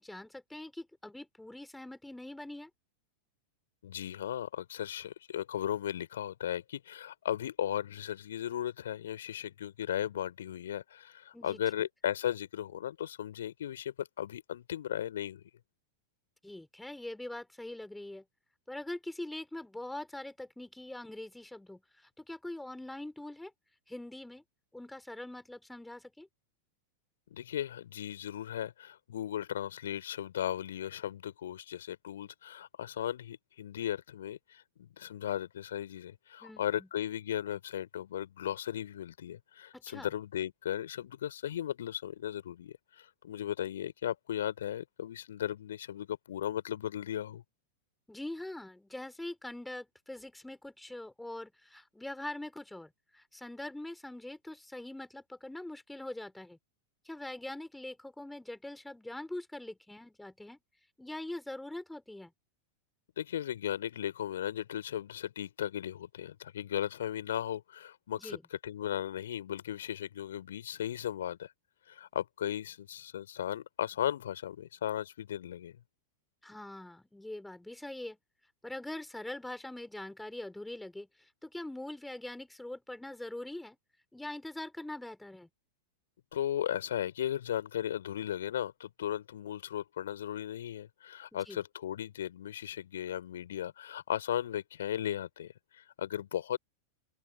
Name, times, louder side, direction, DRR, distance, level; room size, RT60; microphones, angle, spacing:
voice 1, 0.0-2.7 11.3-11.6 16.4-18.2 18.7-23.5 23.9-24.4 24.7-26.3 36.4-36.9 39.7-40.1 48.1-56.6 57.1-60.6 61.0-62.3 68.1-68.4 76.4-78.2 78.6-83.8 84.1-85.5 91.5-91.6, left 1 dB, 5° left, 5.2 m, -43 dB
voice 2, 3.8-15.4 27.3-47.4 63.2-68.4 68.6-71.5 71.9-75.8 86.3-96.6, left 10 dB, 60° left, 4.6 m, -36 dB
open air
figure-of-eight pair, 90°, 0 cm